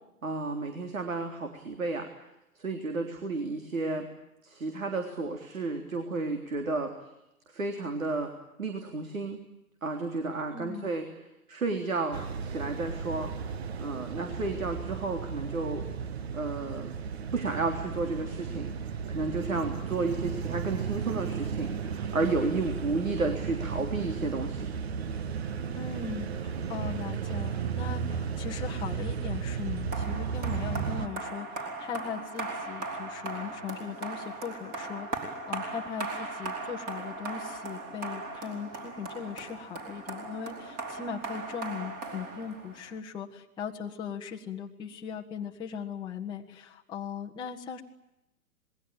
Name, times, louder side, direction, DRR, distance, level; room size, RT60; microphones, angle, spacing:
voice 1, 0.2-2.1 2.6-4.1 4.4-6.9 7.5-8.3 8.6-9.4 9.8-11.1 11.5-13.3 13.8-15.9 16.3-17.0 17.3-18.7 19.1-24.7, right 3 dB, 65° right, 5 dB, 3.6 m, -32 dB
voice 2, 10.5-10.9 25.7-47.8, left 7 dB, 10° left, -1 dB, 1.2 m, -39 dB
sound 1, 12.1-31.1, right 6 dB, 45° right, 1.5 m, -34 dB
sound 2, 29.9-42.9, right 3 dB, 20° right, 4.6 m, -38 dB
27.5 x 21.0 x 8.8 m, 0.91 s
figure-of-eight pair, 120°, 44 cm